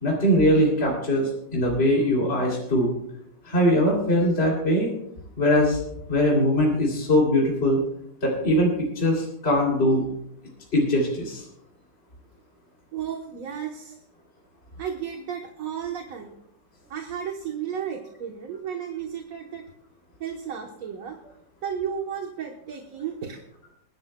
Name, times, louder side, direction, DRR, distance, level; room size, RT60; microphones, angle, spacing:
voice 1, 0.0-2.9 3.5-4.9 5.4-5.8 6.1-7.8 8.2-10.0 10.7-11.4, equal, 35° left, -2 dB, 3.2 m, -21 dB
voice 2, 12.9-14.0 14.8-16.3 16.9-19.6 20.2-21.2 21.6-23.4, right 8 dB, 55° right, 3 dB, 1.4 m, -33 dB
28.0 x 11.0 x 2.2 m, 0.75 s
omnidirectional pair, 2.0 m